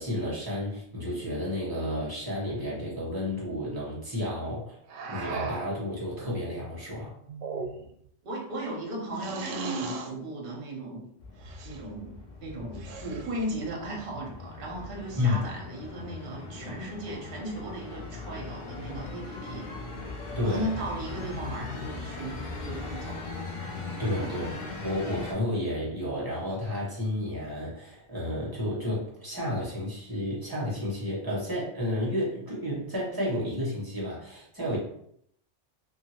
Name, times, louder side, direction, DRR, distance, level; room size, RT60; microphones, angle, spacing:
voice 1, 0.0-4.8 5.1-7.1 15.2-15.5 20.3-20.7 24.0-24.6 24.8-34.8, left 1 dB, 20° right, -6 dB, 1.0 m, -31 dB
sound 1, 4.9-5.8 7.3-8.0 9.2-10.1 11.4-11.8 12.7-13.5, right 4 dB, 85° right, 0.9 m, -37 dB
voice 2, 8.2-11.0 11.6-12.1 12.4-19.7 20.4-23.2 24.2-24.4, right 1 dB, 50° right, -2 dB, 0.9 m, -36 dB
sound 2, 11.2-25.3, left 3 dB, 50° left, 0.6 m, -39 dB
2.7 x 2.6 x 2.9 m, 0.69 s
omnidirectional pair, 1.2 m